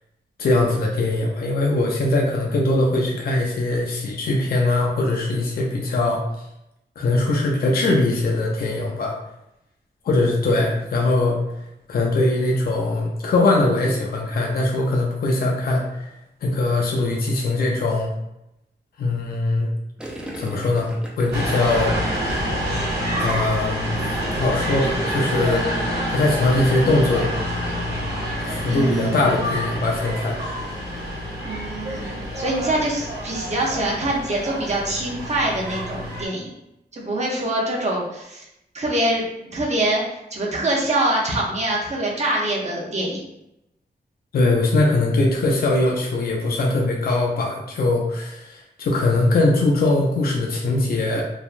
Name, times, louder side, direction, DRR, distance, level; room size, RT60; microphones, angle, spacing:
voice 1, 0.4-6.2 7.0-9.1 10.0-11.4 11.9-16.1 16.4-18.1 19.0-19.7 20.4-20.9 21.2-22.0 22.2-22.4 23.2-25.8 26.1-27.3 28.4-30.4 44.3-51.2, left 2 dB, 60° left, -1 dB, 0.4 m, -21 dB
Gurgling, 20.0-23.8 24.1-24.4, right 1 dB, 5° right, 0.4 m, -37 dB
sound 1, 21.3-36.2, equal, 70° right, 1.0 m, -27 dB
voice 2, 28.7-29.2 31.4-32.1 32.4-36.5 36.9-38.4 38.7-39.2 39.5-43.2, right 1 dB, 40° right, -3 dB, 0.7 m, -24 dB
3.3 x 2.2 x 2.4 m, 0.85 s
wide cardioid pair, 165°, 18 cm